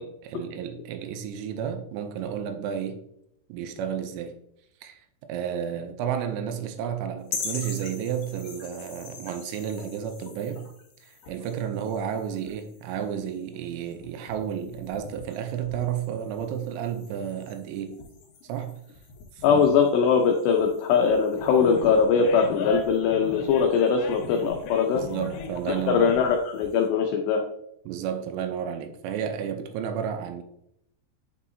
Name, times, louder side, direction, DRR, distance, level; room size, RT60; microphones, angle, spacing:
voice 1, 0.0-3.0 3.5-4.4 4.8-10.7 11.0-18.0 18.4-18.8 19.3-19.7 24.9-26.2 27.9-30.4, right 8 dB, 85° right, 2.5 m, -32 dB
sound 1, 7.3-26.9, left 4 dB, 55° left, 3.5 m, -44 dB
voice 2, 19.4-25.0 25.9-27.4, left 6 dB, 90° left, 2.4 m, -21 dB
Animal, 21.3-26.4, left 5 dB, 75° left, 2.8 m, -38 dB
10.5 x 5.6 x 2.7 m
omnidirectional pair, 5.9 m